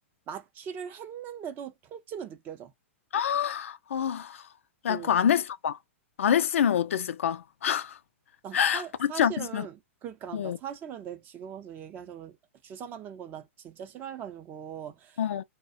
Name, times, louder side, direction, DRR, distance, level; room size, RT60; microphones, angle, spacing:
voice 1, 0.3-2.7 4.9-5.1 8.4-12.4 12.6-15.2, right 8 dB, 30° right, 0.5 m, -40 dB
voice 2, 3.1-4.4 4.8-5.8 6.2-8.0 8.5-9.7 10.3-10.6 15.2-15.4, left 9 dB, 85° left, 0.3 m, -26 dB
2.3 x 2.1 x 2.6 m
hypercardioid pair, 135°, 7 cm